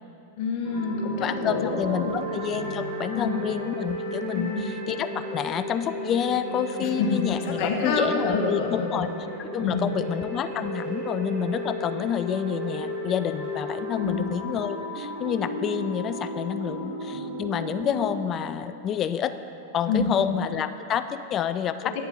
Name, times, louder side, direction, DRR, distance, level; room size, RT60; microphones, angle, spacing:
voice 1, 0.4-2.2 3.1-3.4 4.3-4.6 6.8-9.1 9.6-10.0 14.0-14.3 16.7-17.2 19.9-20.2 21.8-22.1, left 4 dB, 50° left, 2 dB, 1.1 m, -28 dB
sound 1, 0.6-18.1, equal, 35° right, 2.0 m, -34 dB
voice 2, 1.2-9.1 9.4-19.3 19.7-21.9, left 9 dB, 35° left, 11 dB, 0.4 m, -28 dB
8.8 x 6.9 x 4.1 m, 2.9 s
figure-of-eight pair, 95°, 0 cm